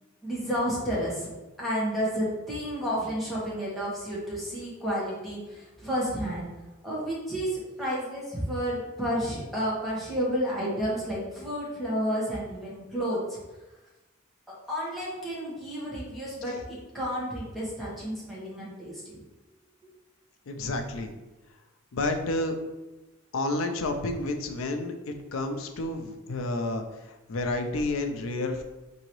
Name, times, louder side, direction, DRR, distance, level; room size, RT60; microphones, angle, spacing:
voice 1, 0.2-1.3 1.6-6.5 6.8-13.4 14.5-19.2, equal, ahead, -8 dB, 1.2 m, -31 dB
voice 2, 20.5-21.1 21.9-22.5 23.3-28.6, left 2 dB, 80° left, 6 dB, 0.4 m, -30 dB
3.8 x 2.7 x 3.0 m, 1.1 s
head